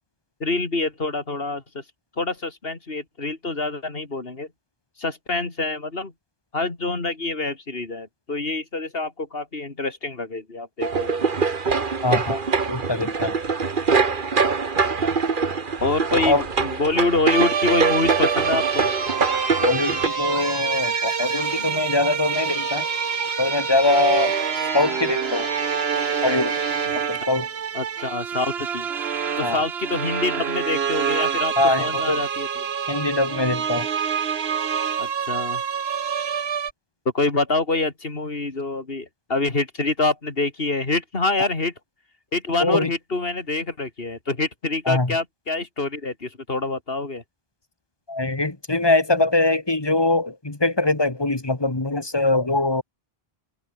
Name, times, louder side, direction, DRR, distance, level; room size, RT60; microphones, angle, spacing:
voice 1, 0.4-1.8 2.2-4.5 5.0-6.1 6.5-11.3 15.8-18.9 27.7-28.9 29.4-32.6 35.0-35.6 37.1-41.7 42.3-47.2, left 3 dB, 65° left, 3.0 m, -26 dB
sound 1, 10.8-20.1, right 4 dB, 55° right, 1.6 m, -23 dB
voice 2, 12.0-12.4 12.7-13.4 16.2-16.4 19.6-22.8 23.4-24.3 24.7-25.5 26.2-26.6 26.9-27.5 29.4-29.6 31.6-32.2 32.9-33.9 42.6-42.9 44.9-45.1 48.1-52.8, left 2 dB, 25° left, 1.7 m, -22 dB
sound 2, 17.3-36.7, right 7 dB, 80° right, 1.3 m, -26 dB
sound 3, 18.2-27.8, left 2 dB, 45° left, 4.4 m, -36 dB
omnidirectional pair, 1.0 m